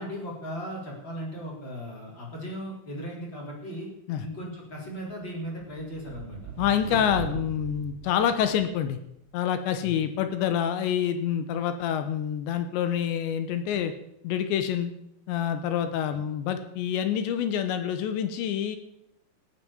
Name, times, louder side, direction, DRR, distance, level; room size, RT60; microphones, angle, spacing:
voice 1, 0.0-3.9 4.2-6.5 9.8-10.1 16.1-16.2, equal, 25° left, -2 dB, 3.8 m, -37 dB
sound 1, 5.1-9.0, right 6 dB, 60° right, 2.9 m, -39 dB
voice 2, 6.6-9.0 9.3-13.9 14.2-14.9 15.3-18.8, left 9 dB, 75° left, 9 dB, 2.9 m, -27 dB
18.0 x 7.6 x 7.1 m, 0.76 s
omnidirectional pair, 5.7 m